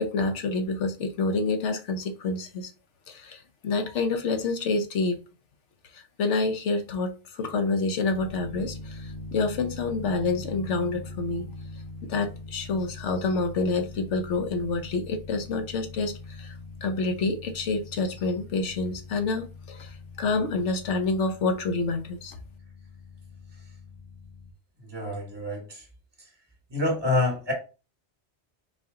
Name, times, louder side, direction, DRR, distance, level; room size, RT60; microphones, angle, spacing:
voice 1, 0.0-2.7 3.1-5.2 5.9-11.5 12.0-22.4, left 3 dB, 85° left, 1.1 m, -28 dB
sound 1, 8.1-24.5, left 2 dB, 50° left, 0.7 m, -42 dB
voice 2, 24.8-25.8 26.7-27.5, left 2 dB, 20° right, 1.7 m, -27 dB
4.2 x 2.8 x 3.6 m
omnidirectional pair, 1.2 m